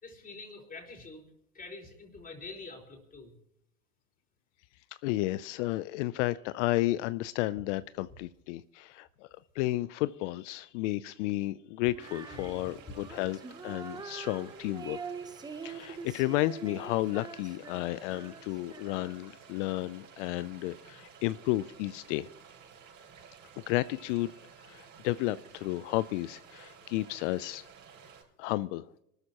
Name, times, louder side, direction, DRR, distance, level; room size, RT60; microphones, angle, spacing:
voice 1, 0.0-1.3 1.5-3.4 12.6-12.7, left 3 dB, 15° left, 3 dB, 4.3 m, -46 dB
voice 2, 5.0-9.3 9.5-15.0 15.6-22.3 23.7-24.3 24.6-27.7 28.4-28.9, left 17 dB, 50° left, 17 dB, 0.5 m, -32 dB
Female singing, 11.9-19.3, right 5 dB, 10° right, 0.7 m, -44 dB
sound 1, 12.0-28.2, right 7 dB, 40° right, 6.8 m, -54 dB
27.0 x 13.5 x 2.9 m, 0.82 s
hypercardioid pair, 105°, 47 cm